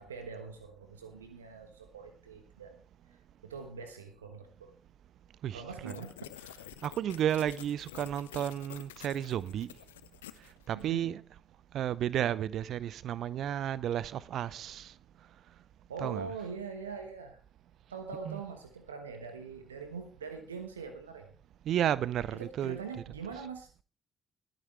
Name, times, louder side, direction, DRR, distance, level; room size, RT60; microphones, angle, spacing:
voice 1, 0.0-2.8 3.4-4.7 5.5-6.2 10.7-11.2 15.9-17.4 17.9-21.3 22.3-23.7, right 5 dB, 85° right, 1.2 m, -43 dB
voice 2, 5.4-6.0 6.4-9.8 10.4-11.4 11.7-15.0 16.0-16.3 18.2-18.4 21.6-23.0 23.3-23.4, right 10 dB, 60° right, 0.5 m, -33 dB
sound 1, 5.9-10.9, left 13 dB, 80° left, 0.5 m, -49 dB
21.0 x 9.2 x 3.4 m
figure-of-eight pair, 40°, 0 cm